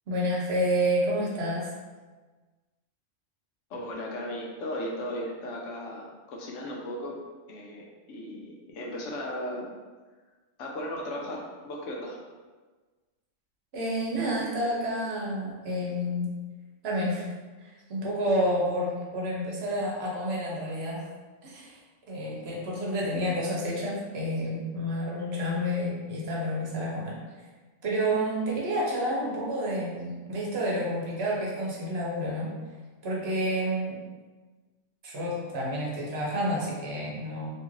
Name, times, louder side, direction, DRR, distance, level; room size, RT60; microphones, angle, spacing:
voice 1, 0.1-1.7 13.7-16.3 16.8-17.3 17.6-21.1 21.4-21.8 22.1-27.1 27.8-32.5 33.0-34.0 35.0-37.5, equal, 65° right, -4 dB, 0.9 m, -29 dB
voice 2, 3.7-7.2 7.5-9.7 10.6-12.2, left 1 dB, 85° left, -2 dB, 1.0 m, -36 dB
2.8 x 2.4 x 3.0 m, 1.3 s
omnidirectional pair, 1.3 m